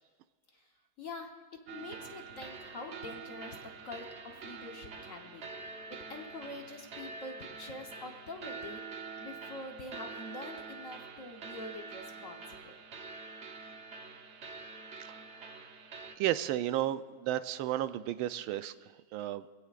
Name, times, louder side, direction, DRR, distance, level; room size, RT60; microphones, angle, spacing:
voice 1, 1.0-1.3 1.7-3.6 3.8-12.7, left 2 dB, 45° left, 3 dB, 1.3 m, -45 dB
sound 1, 1.7-16.2, right 4 dB, 45° right, 0.9 m, -46 dB
voice 2, 15.1-15.5 16.2-19.5, right 13 dB, 85° right, 12 dB, 1.4 m, -33 dB
24.0 x 16.5 x 2.5 m, 1.3 s
omnidirectional pair, 2.2 m